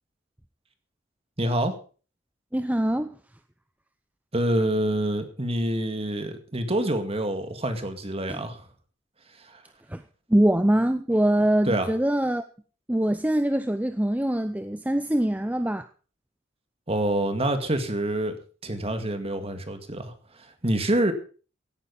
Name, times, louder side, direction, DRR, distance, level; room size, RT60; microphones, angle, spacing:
voice 1, 1.4-1.8 4.3-8.6 9.4-9.6 11.6-11.9 16.9-18.4 18.6-21.1, right 1 dB, 30° right, 8 dB, 2.1 m, -27 dB
voice 2, 2.5-3.1 8.3-8.4 9.9-10.0 10.3-12.4 12.9-15.9, right 1 dB, 10° right, 10 dB, 0.6 m, -23 dB
17.0 x 9.6 x 5.5 m, 0.39 s
head